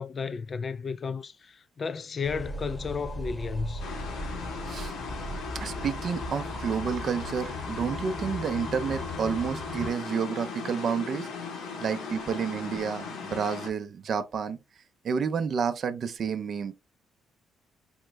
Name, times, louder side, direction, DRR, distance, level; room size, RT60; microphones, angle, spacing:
voice 1, 0.0-3.8, left 5 dB, 45° left, 0.3 m, -33 dB
sound 1, 2.2-9.9, equal, 15° left, 0.8 m, -37 dB
sound 2, 3.8-13.7, left 5 dB, 90° left, 0.9 m, -38 dB
voice 2, 5.5-11.3 11.8-14.6 15.0-16.7, right 6 dB, 55° right, 0.5 m, -30 dB
4.4 x 2.0 x 3.2 m
cardioid pair, 90°, 0 cm